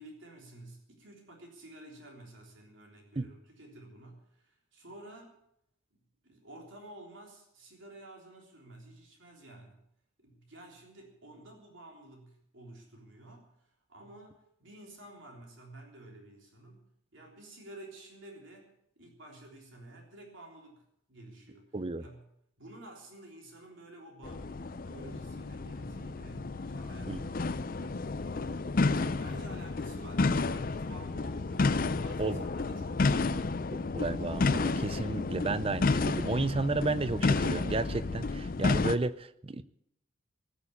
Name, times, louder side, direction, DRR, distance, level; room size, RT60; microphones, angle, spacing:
voice 1, 0.0-5.4 6.2-9.8 10.2-22.3 22.6-28.0 28.3-34.0, right 1 dB, 65° right, 0 dB, 3.5 m, -51 dB
voice 2, 21.7-22.0 27.1-27.2 32.2-32.4 33.9-39.6, right 3 dB, 25° right, 15 dB, 0.5 m, -32 dB
sound 1, 24.2-39.0, left 3 dB, 45° left, 0.5 m, -31 dB
19.0 x 7.2 x 8.5 m, 0.76 s
head